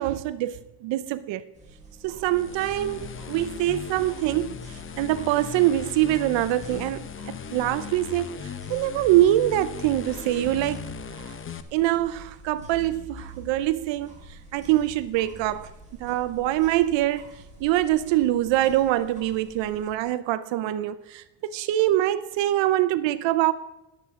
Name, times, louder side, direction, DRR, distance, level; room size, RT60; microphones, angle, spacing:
voice 1, 0.0-1.4 2.0-10.9 11.7-15.7 16.0-23.5, right 14 dB, 65° right, 0.6 m, -24 dB
sound 1, 1.5-19.9, right 2 dB, 15° right, 3.9 m, -47 dB
sound 2, 2.2-11.6, left 7 dB, 25° left, 0.7 m, -38 dB
20.5 x 7.7 x 3.6 m
cardioid pair, 125°, 49 cm